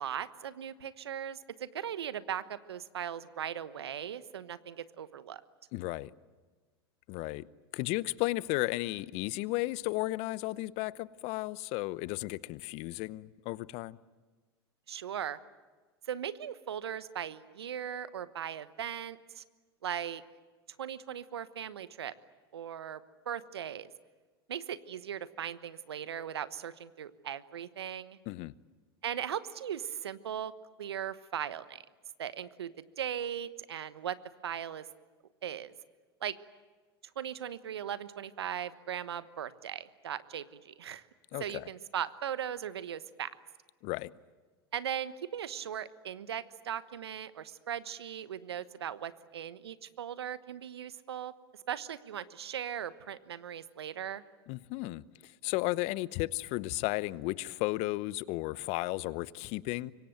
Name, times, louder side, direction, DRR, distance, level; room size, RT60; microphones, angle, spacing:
voice 1, 0.0-5.4 14.9-15.4 16.1-19.4 19.8-20.2 20.8-22.1 22.5-23.9 24.5-28.2 29.0-30.5 30.8-31.8 32.2-34.2 34.4-34.8 35.4-35.7 36.2-36.4 37.2-41.0 41.4-43.3 44.7-51.3 51.7-54.2, right 9 dB, 80° right, 1.2 m, -38 dB
voice 2, 5.7-6.1 7.1-7.5 7.7-14.0 28.3-28.5 41.3-41.7 43.8-44.1 54.5-59.9, left 20 dB, 55° left, 0.8 m, -34 dB
26.0 x 23.5 x 9.1 m
hypercardioid pair, 90°, 13 cm